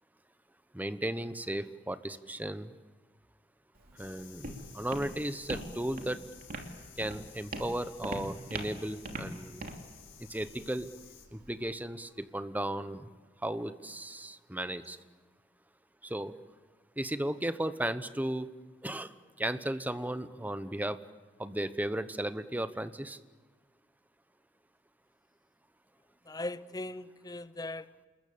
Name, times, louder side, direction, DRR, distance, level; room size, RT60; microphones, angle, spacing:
voice 1, 0.7-2.7 4.0-6.2 7.0-9.6 10.2-10.9 11.3-13.1 13.4-15.0 16.0-16.3 17.0-18.5 18.8-19.1 19.4-21.0 21.4-23.2, right 1 dB, 10° right, 1.0 m, -35 dB
Walk footsteps, 3.8-11.7, right 1 dB, 50° right, 3.0 m, -43 dB
sound 1, 4.0-11.3, left 10 dB, 90° left, 3.9 m, -55 dB
voice 2, 26.3-28.1, left 2 dB, 20° left, 0.8 m, -39 dB
28.5 x 21.5 x 8.7 m
head